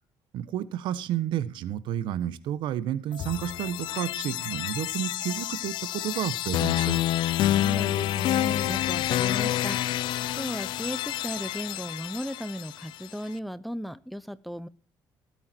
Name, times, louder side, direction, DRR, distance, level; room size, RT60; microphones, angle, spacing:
voice 1, 0.3-7.0, right 11 dB, 80° right, 16 dB, 1.2 m, -31 dB
sound 1, 3.1-13.1, left 13 dB, 75° left, 0.5 m, -28 dB
Bowed string instrument, 3.2-6.6, left 9 dB, 55° left, 1.1 m, -45 dB
voice 2, 7.3-14.7, equal, ahead, 15 dB, 0.8 m, -36 dB
19.5 x 8.7 x 4.5 m, 0.36 s
cardioid pair, 110°, 8 cm